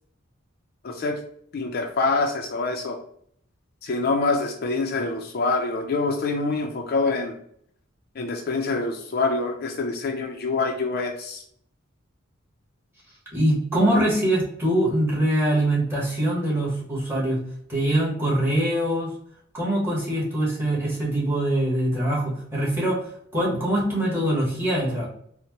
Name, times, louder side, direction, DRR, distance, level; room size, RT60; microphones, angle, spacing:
voice 1, 0.8-1.2 1.5-3.0 3.8-7.4 8.2-11.4, left 3 dB, 45° left, 3 dB, 0.4 m, -25 dB
voice 2, 13.3-17.4 17.7-19.1 19.5-23.0 23.3-25.1, right 1 dB, 10° right, -5 dB, 1.2 m, -23 dB
4.2 x 2.1 x 2.9 m, 0.64 s
head